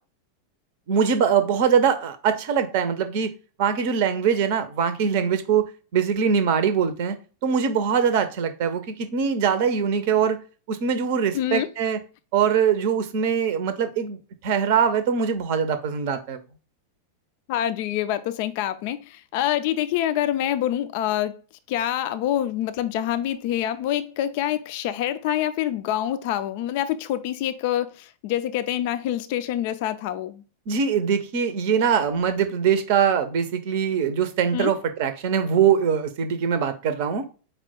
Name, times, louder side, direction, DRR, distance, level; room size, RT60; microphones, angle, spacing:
voice 1, 0.9-3.3 3.6-7.2 7.4-10.4 10.7-12.0 12.3-14.2 14.4-16.4 30.7-37.2, right 7 dB, 50° right, 0.6 m, -22 dB
voice 2, 11.3-11.7 17.5-21.4 21.7-30.4 34.5-34.7, left 12 dB, 50° left, 0.3 m, -26 dB
4.4 x 2.2 x 4.3 m
figure-of-eight pair, 90°, 0 cm